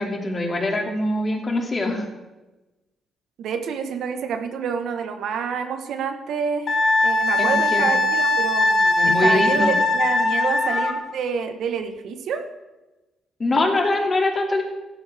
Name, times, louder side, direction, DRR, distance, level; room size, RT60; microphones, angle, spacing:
voice 1, 0.0-2.1 7.4-7.9 9.0-9.8 13.4-14.6, left 2 dB, 30° left, 2 dB, 2.6 m, -23 dB
voice 2, 3.4-12.4, right 6 dB, 75° right, 6 dB, 1.3 m, -28 dB
Wind instrument woodwind instrument, 6.7-11.0, left 2 dB, 50° left, 1.9 m, -20 dB
16.0 x 12.0 x 3.6 m, 1.1 s
cardioid pair, 90°, 0 cm